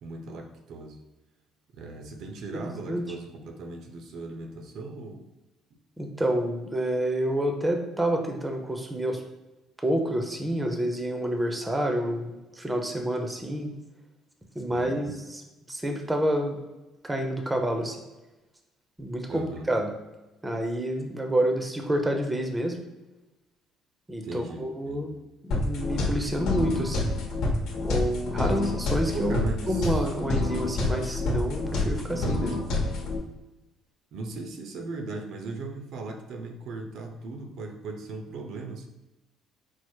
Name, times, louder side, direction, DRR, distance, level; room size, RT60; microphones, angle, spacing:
voice 1, 0.0-1.0 1.7-5.3 14.7-15.2 19.3-19.7 24.2-25.2 28.5-28.8 29.1-30.1 34.1-38.9, right 3 dB, 65° right, 4 dB, 0.6 m, -38 dB
voice 2, 2.5-3.0 6.0-9.2 9.8-13.7 14.6-15.4 15.7-16.6 17.0-18.0 19.0-19.9 20.4-22.8 24.1-25.1 25.4-27.1 27.8-32.6, right 1 dB, 10° right, 3 dB, 0.6 m, -28 dB
sound 1, 25.5-33.2, left 2 dB, 70° left, 1.0 m, -28 dB
4.6 x 2.0 x 4.4 m, 1.1 s
cardioid pair, 120°, 0 cm